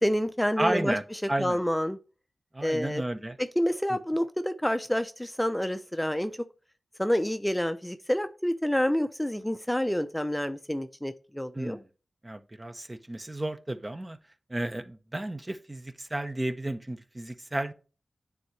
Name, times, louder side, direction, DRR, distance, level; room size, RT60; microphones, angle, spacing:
voice 1, 0.0-2.0 2.6-3.0 3.4-6.3 7.0-11.8, equal, 5° left, 0.6 m, -28 dB
voice 2, 0.6-1.0 1.3-1.6 2.5-3.4 11.5-11.8 12.2-14.2 14.5-17.7, right 1 dB, 30° right, 0.7 m, -32 dB
9.2 x 3.6 x 3.2 m
cardioid pair, 45°, 0 cm